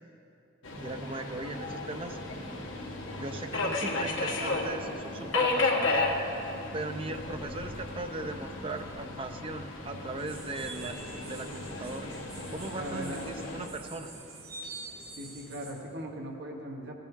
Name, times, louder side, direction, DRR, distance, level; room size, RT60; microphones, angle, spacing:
Subway metro underground, 0.6-13.7, left 2 dB, 65° left, 1.2 m, -34 dB
voice 1, 0.8-2.2 3.2-6.1 6.7-11.0 11.3-12.1 12.5-14.1, right 2 dB, 25° right, 7 dB, 0.5 m, -38 dB
sound 1, 10.2-15.7, right 2 dB, 90° right, 2.5 m, -46 dB
voice 2, 12.7-13.3 15.2-17.0, right 1 dB, 50° right, 1 dB, 1.2 m, -39 dB
15.5 x 8.9 x 3.6 m, 2.7 s
head